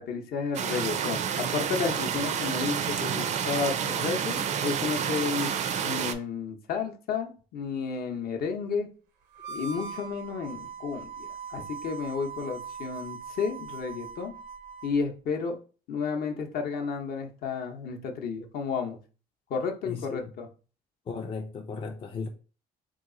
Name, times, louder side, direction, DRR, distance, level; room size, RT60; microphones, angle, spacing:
voice 1, 0.0-8.9 9.5-14.3 14.8-15.6 15.9-19.0 19.5-20.5, left 5 dB, 65° left, 0.7 m, -32 dB
sound 1, 0.5-6.1, right 8 dB, 45° right, 0.4 m, -29 dB
Harmonica, 9.3-15.0, right 6 dB, 90° right, 0.6 m, -41 dB
voice 2, 19.9-20.3 21.1-22.3, left 5 dB, 30° left, 0.4 m, -36 dB
2.9 x 2.4 x 3.8 m
cardioid pair, 110°, 17 cm